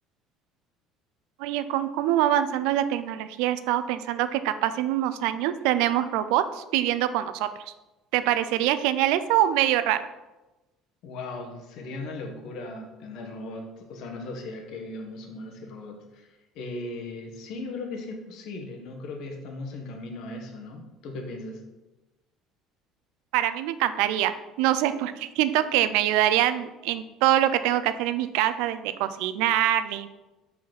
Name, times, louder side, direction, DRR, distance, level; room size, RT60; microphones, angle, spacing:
voice 1, 1.4-7.5 8.1-10.0 23.3-30.1, right 12 dB, 80° right, 12 dB, 0.4 m, -24 dB
voice 2, 11.0-21.6, left 2 dB, 65° left, 2 dB, 1.2 m, -38 dB
5.2 x 4.1 x 5.8 m, 1.1 s
cardioid pair, 115°, 0 cm